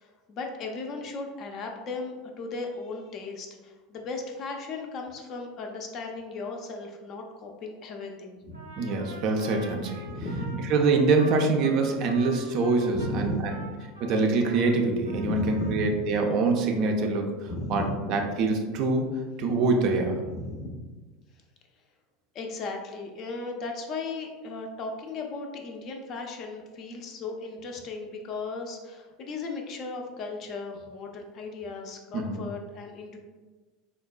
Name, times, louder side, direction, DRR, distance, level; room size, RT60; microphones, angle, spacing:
voice 1, 0.0-8.6 10.0-10.7 12.9-13.7 15.1-16.0 17.5-18.1 20.2-20.8 22.3-33.2, left 3 dB, 40° left, 2 dB, 0.4 m, -36 dB
Trumpet, 8.5-14.7 15.0-15.8, right 1 dB, 85° right, 0.6 m, -45 dB
voice 2, 8.8-10.0 10.7-13.3 14.0-17.3 17.7-19.1 19.4-20.2 32.1-32.4, right 3 dB, 45° right, 3 dB, 0.4 m, -24 dB
3.8 x 2.1 x 2.3 m, 1.3 s
figure-of-eight pair, 75°, 0 cm